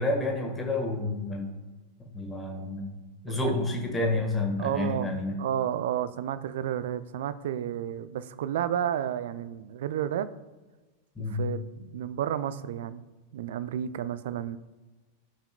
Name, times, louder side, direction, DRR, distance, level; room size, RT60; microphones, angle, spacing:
voice 1, 0.0-1.5 2.1-2.9 3.2-5.4 11.2-11.4, left 2 dB, 15° left, 1 dB, 1.6 m, -29 dB
voice 2, 3.3-3.6 4.6-10.3 11.2-13.0 13.3-14.6, right 10 dB, 55° right, 14 dB, 0.4 m, -31 dB
14.0 x 5.8 x 2.2 m, 1.2 s
figure-of-eight pair, 90°, 0 cm